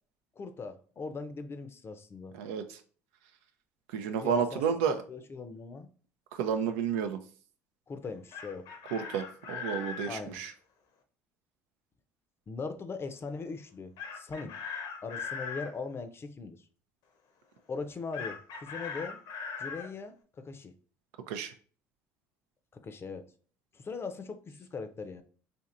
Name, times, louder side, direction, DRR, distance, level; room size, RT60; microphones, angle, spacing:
voice 1, 0.4-2.4 4.2-4.6 5.1-5.9 7.9-8.7 10.0-10.4 12.5-14.6 15.0-16.6 17.7-19.2 19.6-20.7 22.7-23.3 23.7-25.2, left 4 dB, 30° left, 0.5 m, -40 dB
voice 2, 2.4-2.8 3.9-5.0 6.3-7.2 8.9-10.5 21.3-21.5, right 7 dB, 80° right, 0.4 m, -31 dB
Chicken rooster, 8.1-10.1 14.0-15.7 18.1-19.9, left 6 dB, 70° left, 0.8 m, -39 dB
4.3 x 2.8 x 2.5 m
hypercardioid pair, 70°, 8 cm